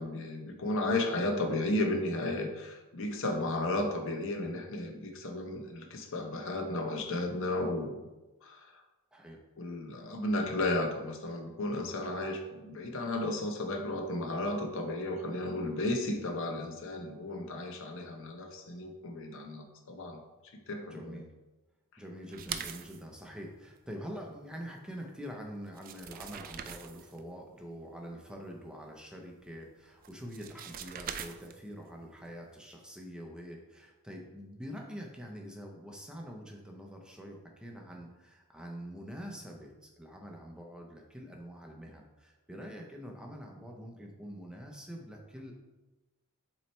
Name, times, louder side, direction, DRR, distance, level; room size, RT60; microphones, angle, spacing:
voice 1, 0.0-8.0 8.4-8.8 9.6-20.2 20.7-21.2, left 2 dB, 60° left, 3 dB, 0.8 m, -34 dB
voice 2, 20.9-21.3 22.0-45.5, equal, 5° right, 0 dB, 0.6 m, -45 dB
sound 1, 22.3-23.0 25.3-25.4 25.7-27.2 30.0-31.8, right 8 dB, 40° right, 0.3 m, -42 dB
7.3 x 3.1 x 4.3 m, 1.1 s
head